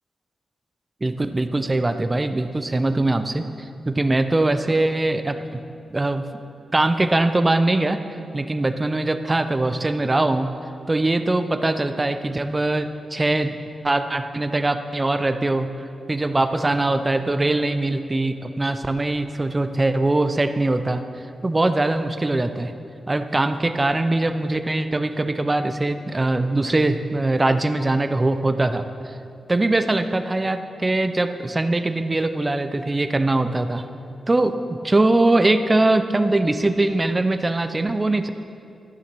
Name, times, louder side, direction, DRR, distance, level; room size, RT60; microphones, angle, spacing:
voice 1, 1.0-3.5 3.8-5.4 5.9-6.2 6.7-8.0 8.3-10.5 10.9-13.6 13.8-15.7 16.1-21.0 21.4-22.7 23.1-28.8 29.5-33.8 34.3-38.3, right 2 dB, 20° right, 9 dB, 0.6 m, -21 dB
12.5 x 7.2 x 6.1 m, 2.6 s
wide cardioid pair, 100°, 0 cm